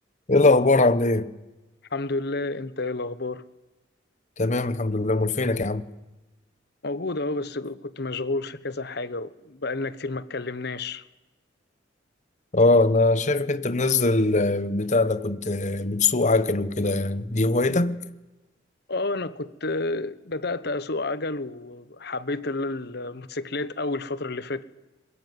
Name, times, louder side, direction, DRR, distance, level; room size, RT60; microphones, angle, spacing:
voice 1, 0.3-1.3 4.4-5.8 12.5-18.0, left 2 dB, 40° left, 1.2 m, -21 dB
voice 2, 1.9-3.4 6.8-11.0 18.9-24.6, left 2 dB, 60° left, 1.2 m, -30 dB
22.5 x 21.5 x 9.5 m
head